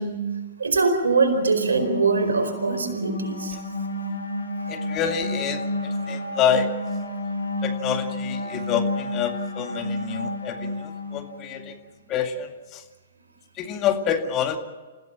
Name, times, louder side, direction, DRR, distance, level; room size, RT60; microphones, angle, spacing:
voice 1, 0.0-3.6, right 4 dB, 75° right, 6 dB, 4.6 m, -23 dB
sound 1, 1.2-11.7, left 1 dB, 80° left, 2.9 m, -31 dB
voice 2, 4.7-6.7 7.6-11.8 12.1-12.8 13.6-14.6, left 8 dB, 30° left, 6 dB, 2.1 m, -27 dB
28.5 x 16.0 x 7.5 m, 1.3 s
figure-of-eight pair, 115°, 0 cm